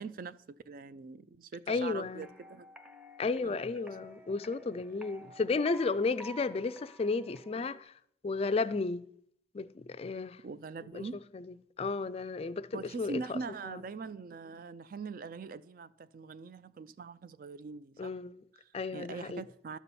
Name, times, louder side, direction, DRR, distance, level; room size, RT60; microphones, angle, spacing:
voice 1, 0.0-2.7 3.4-3.6 7.6-7.7 10.4-11.2 12.7-18.1 18.5-19.8, right 4 dB, 50° right, 0.4 m, -43 dB
voice 2, 1.7-2.3 3.2-7.9 8.2-9.1 9.5-10.4 10.9-11.0 11.3-11.4 11.8-13.4 13.7-13.8 18.0-18.3 18.7-19.4, left 4 dB, 35° left, 0.3 m, -33 dB
sound 1, 2.2-7.8, equal, 5° right, 0.7 m, -52 dB
12.0 x 4.2 x 6.9 m
head